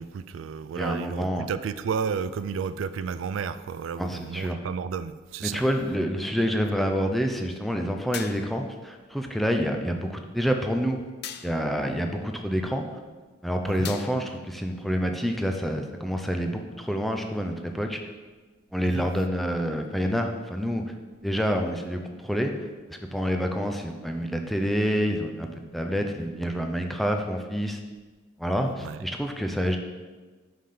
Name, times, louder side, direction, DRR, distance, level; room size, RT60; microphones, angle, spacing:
voice 1, 0.0-5.6 13.8-13.9 18.9-19.1 28.8-29.1, right 6 dB, 85° right, 14 dB, 0.3 m, -32 dB
voice 2, 0.7-1.5 4.0-4.6 5.4-11.0 11.4-12.9 13.4-18.0 18.7-20.8 21.2-22.6 22.9-27.8 28.4-29.8, equal, ahead, 3 dB, 0.5 m, -27 dB
sound 1, 8.1-8.7 11.2-11.8 13.8-14.4, left 9 dB, 55° left, 0.4 m, -39 dB
5.6 x 5.0 x 5.6 m, 1.3 s
head